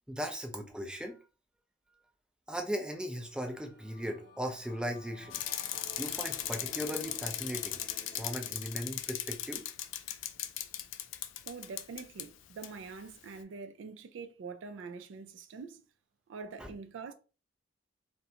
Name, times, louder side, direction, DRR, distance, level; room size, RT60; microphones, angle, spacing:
voice 1, 0.1-1.2 2.5-5.4 6.0-7.8 8.1-9.6 16.6-16.7, equal, 5° right, 0.4 m, -38 dB
Singing / Musical instrument, 3.0-12.6, left 2 dB, 45° left, 0.8 m, -55 dB
Bicycle, 5.3-12.3 12.6-12.7, left 12 dB, 85° left, 0.3 m, -38 dB
voice 2, 11.4-15.8 16.3-17.1, right 4 dB, 85° right, 0.4 m, -45 dB
2.4 x 2.1 x 2.8 m
head